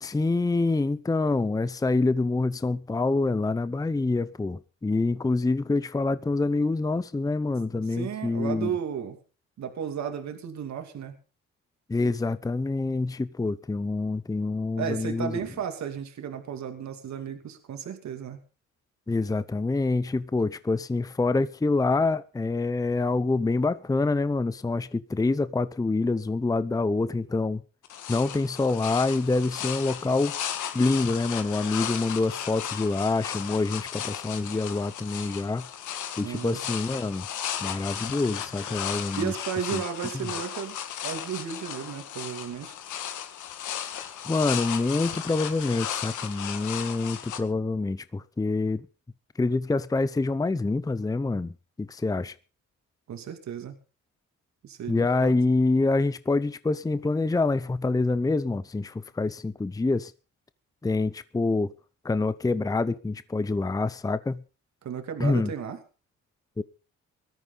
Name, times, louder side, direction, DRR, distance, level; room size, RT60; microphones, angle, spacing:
voice 1, 0.0-8.7 11.9-15.4 19.1-27.6 28.1-30.4 30.7-35.7 36.2-37.3 37.6-39.3 39.7-39.8 44.3-48.9 49.4-51.5 51.8-52.3 54.9-60.1 60.8-61.7 62.0-64.4 65.2-65.5 66.6-66.7, left 3 dB, 10° left, 0.7 m, -26 dB
voice 2, 7.7-9.2 9.6-11.1 14.8-18.4 36.2-36.6 39.2-40.8 41.0-42.8 53.1-53.8 54.6-55.4 64.8-65.8, right 8 dB, 65° right, 2.7 m, -34 dB
sound 1, 27.8-47.4, left 10 dB, 80° left, 2.0 m, -35 dB
18.5 x 13.5 x 4.0 m
cardioid pair, 90°, 30 cm